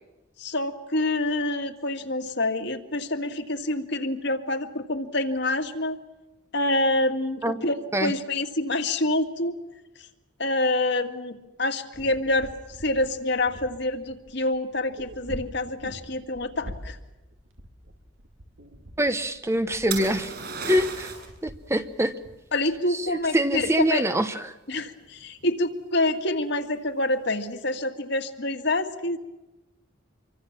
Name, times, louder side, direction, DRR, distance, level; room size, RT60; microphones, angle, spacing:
voice 1, 0.4-6.0 6.5-9.5 10.4-12.5 12.8-17.0 22.5-24.0 24.7-29.2, left 2 dB, 60° left, 6 dB, 2.1 m, -27 dB
sound 1, 11.9-23.6, equal, 75° right, 2.8 m, -45 dB
voice 2, 19.0-20.3 20.6-21.1 21.4-22.1 22.9-24.5, right 1 dB, 15° right, 10 dB, 0.9 m, -25 dB
sound 2, 19.9-21.4 25.0-25.5, right 5 dB, 50° right, 6.9 m, -34 dB
26.5 x 24.0 x 7.4 m, 1.0 s
head